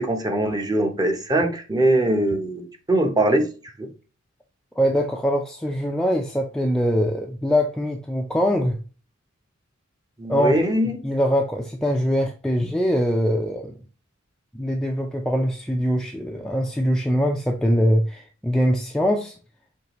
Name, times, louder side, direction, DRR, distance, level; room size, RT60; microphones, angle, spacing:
voice 1, 0.0-3.5 3.8-3.9 10.2-10.9, right 1 dB, 20° right, 0.7 m, -22 dB
voice 2, 4.8-8.8 10.3-10.6 11.0-13.7 14.5-19.3, equal, 5° left, 0.4 m, -22 dB
5.5 x 3.3 x 2.9 m
head